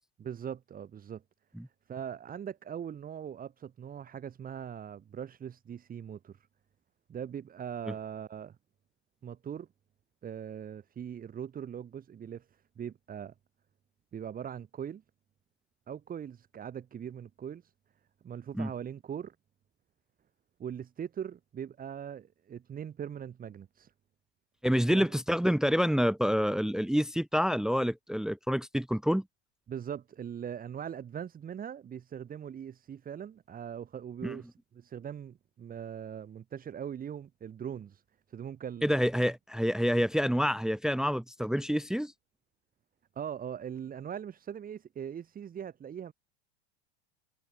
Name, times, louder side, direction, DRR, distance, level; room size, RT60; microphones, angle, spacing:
voice 1, 0.2-1.2 1.9-6.3 7.1-8.6 9.2-9.7 10.2-12.5 12.8-13.3 14.1-15.0 15.9-17.7 18.2-19.3 20.6-23.9 24.9-25.1 29.7-38.0 38.3-39.0 43.2-46.1, right 8 dB, 25° right, 2.7 m, -41 dB
voice 2, 24.6-29.2 34.2-34.4 38.8-42.1, equal, ahead, 0.9 m, -28 dB
figure-of-eight pair, 85°, 34 cm